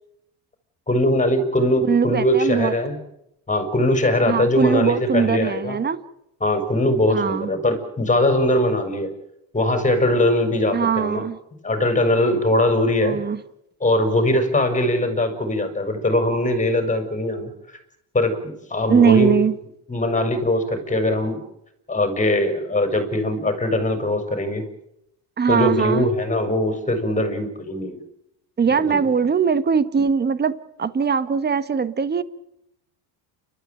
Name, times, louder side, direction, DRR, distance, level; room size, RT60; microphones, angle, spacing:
voice 1, 0.9-3.0 3.5-5.8 6.4-9.1 9.5-11.2 11.6-13.2 13.8-17.5 18.1-19.4 19.9-21.4 21.9-24.6 25.5-28.0 28.9-29.0, left 1 dB, 15° left, 8 dB, 5.4 m, -21 dB
voice 2, 1.9-2.8 4.3-6.0 7.1-7.5 10.7-11.4 13.0-13.4 18.9-19.6 25.4-26.1 28.6-32.2, right 6 dB, 20° right, 14 dB, 1.4 m, -20 dB
29.5 x 13.5 x 9.1 m, 0.81 s
supercardioid pair, 115°, 44 cm